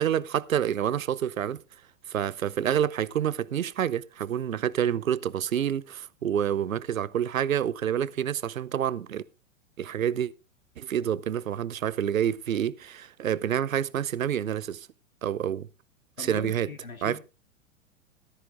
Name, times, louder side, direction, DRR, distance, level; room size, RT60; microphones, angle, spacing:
voice 1, 0.0-1.6 2.1-9.2 9.8-10.3 10.8-14.9 15.2-15.7 16.2-16.7 17.0-17.2, right 9 dB, 75° right, 0.7 m, -28 dB
voice 2, 16.2-17.2, left 4 dB, 85° left, 2.2 m, -39 dB
15.0 x 13.0 x 2.5 m
figure-of-eight pair, 105°, 40 cm